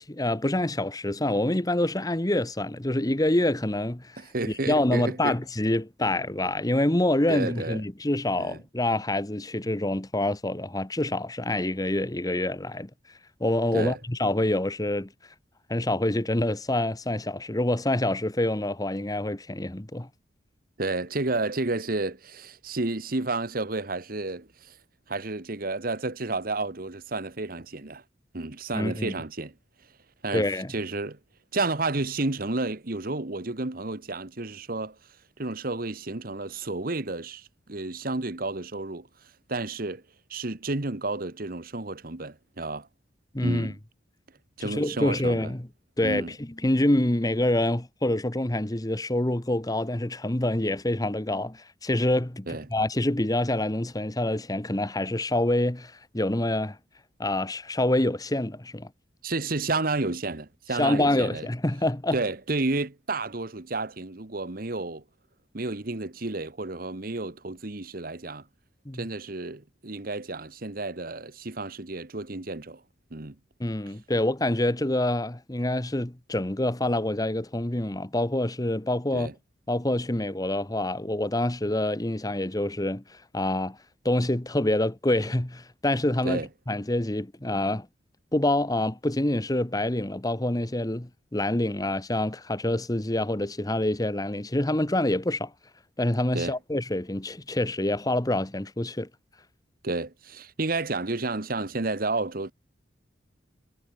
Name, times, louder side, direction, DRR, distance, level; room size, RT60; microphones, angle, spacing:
voice 1, 0.0-4.2 4.7-12.9 13.4-15.1 15.7-20.1 28.7-29.2 30.3-30.7 43.3-43.7 44.6-45.7 46.0-56.8 57.2-58.9 60.8-62.2 68.8-69.1 73.6-79.3 79.7-83.8 84.0-87.9 88.3-95.5 96.0-99.1, left 1 dB, 20° left, 1.2 m, -26 dB
voice 2, 4.2-5.4 7.3-7.8 8.4-8.6 13.7-14.0 20.8-24.7 25.1-28.0 28.3-29.5 30.2-31.2 31.5-35.0 35.4-39.1 39.5-40.0 40.3-42.9 43.4-43.8 44.6-45.5 46.0-46.3 52.5-52.7 59.2-61.5 62.1-65.0 65.5-68.4 68.9-72.8 73.1-73.4 79.1-79.3 86.2-86.5 96.3-96.6 99.8-102.5, right 2 dB, 50° right, 1.4 m, -31 dB
head